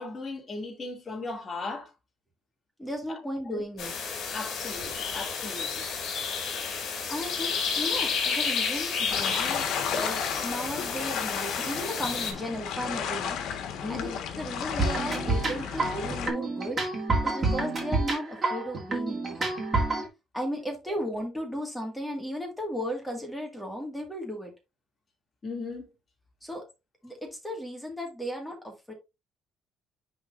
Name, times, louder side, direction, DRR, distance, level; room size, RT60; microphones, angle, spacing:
voice 1, 0.0-1.9 3.5-3.6 4.3-5.9 13.8-14.2 17.4-17.7 25.4-25.8, left 3 dB, 25° left, 2.6 m, -37 dB
voice 2, 2.8-3.9 7.1-16.8 17.2-19.5 20.3-24.5 26.4-26.6 27.0-28.9, equal, 5° left, 1.9 m, -35 dB
sound 1, 3.8-12.3, left 5 dB, 55° left, 2.7 m, -31 dB
sound 2, 9.1-16.3, left 8 dB, 75° left, 1.5 m, -33 dB
sound 3, 14.8-20.1, right 3 dB, 25° right, 2.3 m, -28 dB
10.0 x 4.1 x 2.6 m
cardioid pair, 160°, 0 cm